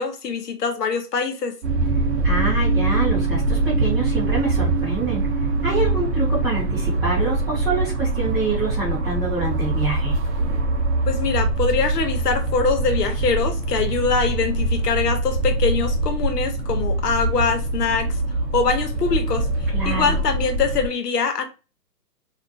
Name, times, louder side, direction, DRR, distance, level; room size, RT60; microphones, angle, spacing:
voice 1, 0.0-1.6 11.1-18.1 18.5-19.5 19.8-21.4, left 5 dB, 70° left, 0.9 m, -23 dB
sound 1, 1.6-20.9, right 2 dB, 45° right, 0.6 m, -23 dB
voice 2, 2.2-5.2 5.6-10.2 19.7-20.2, right 3 dB, 5° right, 0.7 m, -26 dB
2.5 x 2.3 x 2.5 m
hypercardioid pair, 145°, 49 cm